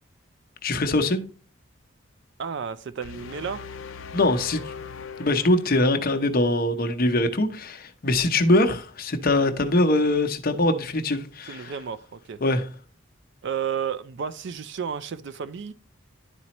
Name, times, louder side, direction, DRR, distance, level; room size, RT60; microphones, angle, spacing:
voice 1, 0.6-1.2 4.1-4.7 5.2-11.7 12.4-12.7, left 2 dB, 45° left, 0.8 m, -22 dB
voice 2, 2.4-3.6 11.5-12.4 13.4-15.7, right 7 dB, 60° right, 0.4 m, -32 dB
sound 1, 3.0-6.2, left 5 dB, 70° left, 0.5 m, -40 dB
11.0 x 4.2 x 2.9 m
head